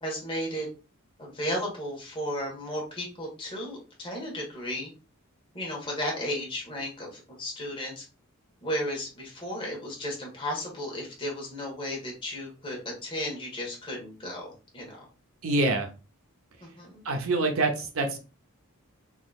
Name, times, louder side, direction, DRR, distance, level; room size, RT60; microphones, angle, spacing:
voice 1, 0.0-0.7 1.2-4.9 5.5-8.0 8.6-15.1 16.6-17.0, equal, 25° left, 1.4 m, -34 dB
voice 2, 15.4-15.9 17.0-18.2, right 2 dB, 70° right, 0.7 m, -25 dB
3.7 x 3.1 x 2.4 m
head